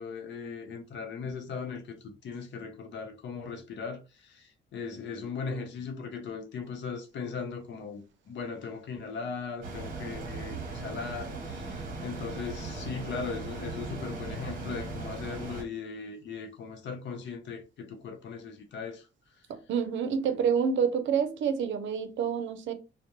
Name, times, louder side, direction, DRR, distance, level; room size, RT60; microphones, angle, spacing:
voice 1, 0.0-19.1, left 5 dB, 65° left, 0.7 m, -38 dB
sound 1, 9.6-15.6, right 3 dB, 45° right, 0.9 m, -38 dB
voice 2, 19.5-22.7, right 7 dB, 70° right, 0.5 m, -28 dB
2.2 x 2.1 x 2.9 m
cardioid pair, 90°, 20 cm